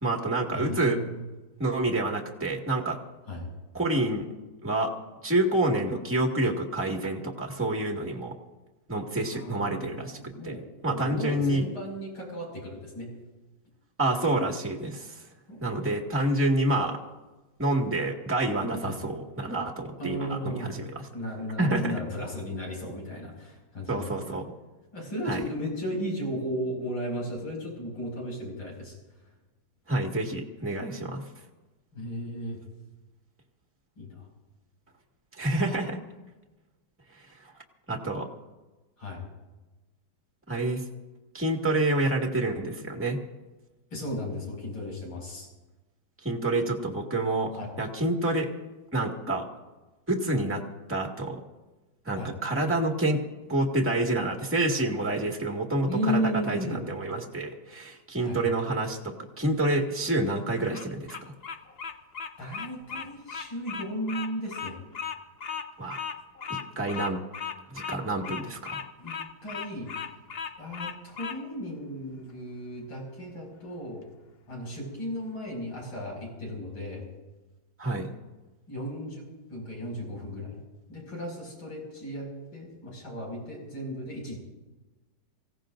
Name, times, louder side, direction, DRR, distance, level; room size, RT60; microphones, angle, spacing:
voice 1, 0.0-1.0 1.6-3.0 3.7-4.2 4.6-4.9 5.2-8.3 8.9-11.6 14.0-15.2 15.6-17.0 17.6-21.1 21.6-21.9 23.9-24.4 25.3-25.4 29.9-31.2 35.4-36.0 37.9-38.3 40.5-40.8 41.3-43.2 46.2-47.5 47.8-48.5 48.9-49.4 50.1-50.6 50.9-51.4 52.0-53.2 53.5-61.2 65.8-66.0 66.5-67.2 67.7-68.8 77.8-78.1, right 2 dB, 5° right, 0 dB, 1.7 m, -28 dB
voice 2, 0.5-1.2 3.3-3.5 9.3-13.1 15.5-15.7 18.8-19.0 20.0-20.8 21.1-24.4 24.9-28.9 31.9-32.6 34.0-34.2 39.0-39.2 43.9-45.5 47.5-47.7 52.2-52.3 55.8-56.8 58.2-58.4 62.4-64.8 66.9-67.1 69.0-69.9 70.6-74.0 74.5-77.0 78.7-80.6 80.9-84.4, equal, 85° left, -1 dB, 6.5 m, -35 dB
Bird vocalization bird call bird song, 60.5-71.4, left 7 dB, 55° left, 0.6 m, -37 dB
26.5 x 17.0 x 2.6 m, 1.1 s
omnidirectional pair, 2.2 m